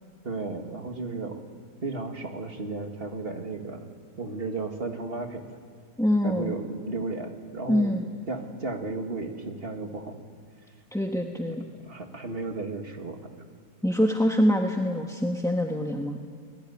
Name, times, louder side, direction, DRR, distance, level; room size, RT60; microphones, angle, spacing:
voice 1, 0.2-1.4 1.8-5.5 6.2-8.0 8.3-10.2 11.4-11.6 11.8-13.2, right 3 dB, 35° right, 4 dB, 2.0 m, -34 dB
voice 2, 6.0-6.5 7.7-8.0 10.9-11.6 13.8-16.2, equal, ahead, 2 dB, 1.0 m, -25 dB
28.5 x 20.5 x 9.7 m, 2.2 s
omnidirectional pair, 1.7 m